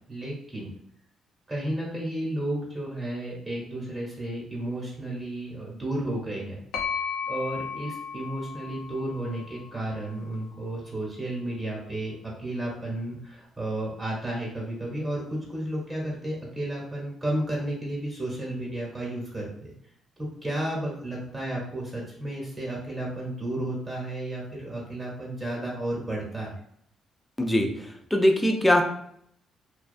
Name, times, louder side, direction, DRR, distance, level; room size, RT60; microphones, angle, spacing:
voice 1, 0.1-0.7 1.5-6.6 6.9-19.7 20.2-26.5, right 1 dB, 25° right, -3 dB, 0.9 m, -32 dB
sound 1, 6.7-10.5, left 6 dB, 90° left, 0.4 m, -35 dB
voice 2, 27.4-28.8, left 1 dB, 10° left, 4 dB, 0.4 m, -22 dB
2.4 x 2.2 x 2.5 m, 0.69 s
cardioid pair, 90°, 0 cm